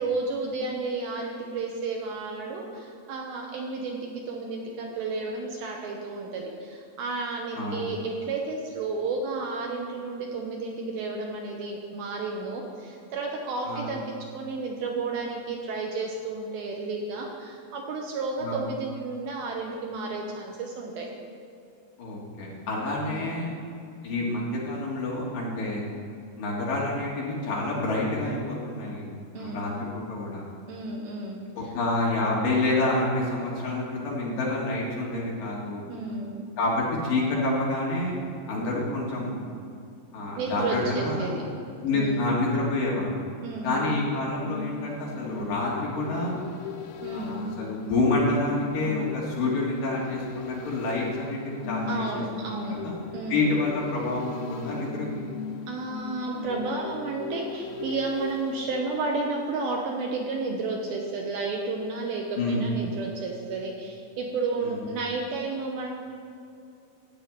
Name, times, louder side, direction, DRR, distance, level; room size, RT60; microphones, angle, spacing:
voice 1, 0.0-21.1 23.1-23.4 29.3-29.7 30.7-31.7 35.9-36.4 40.4-41.4 41.9-42.3 43.4-43.8 47.0-47.5 51.9-52.8 53.1-53.5 55.7-65.9, right 3 dB, 75° right, 0 dB, 2.5 m, -32 dB
voice 2, 22.0-23.5 24.0-25.8 26.4-29.1 29.4-30.4 31.5-35.8 36.6-38.1 38.5-39.4 40.1-41.3 41.7-43.1 43.6-46.3 47.1-53.0 53.3-55.2 62.3-62.7 64.6-64.8, left 2 dB, 60° left, -4 dB, 3.2 m, -28 dB
sound 1, 43.5-59.8 60.1-60.2, left 6 dB, 80° left, 2.2 m, -38 dB
13.5 x 4.8 x 9.0 m, 2.6 s
omnidirectional pair, 5.1 m